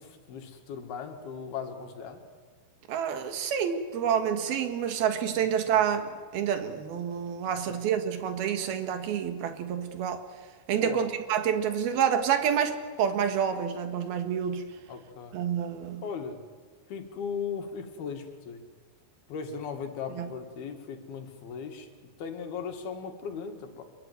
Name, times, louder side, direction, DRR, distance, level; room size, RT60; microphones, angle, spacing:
voice 1, 0.0-2.2 5.7-5.8 7.5-7.8 10.7-11.1 14.9-15.4 16.0-16.4 16.9-18.6 19.3-21.9 22.2-23.8, left 6 dB, 85° left, 5 dB, 4.0 m, -38 dB
voice 2, 2.9-10.2 10.7-14.7 15.3-16.0 20.2-20.3, right 8 dB, 80° right, 7 dB, 3.7 m, -28 dB
25.5 x 23.0 x 9.4 m, 1.6 s
omnidirectional pair, 4.3 m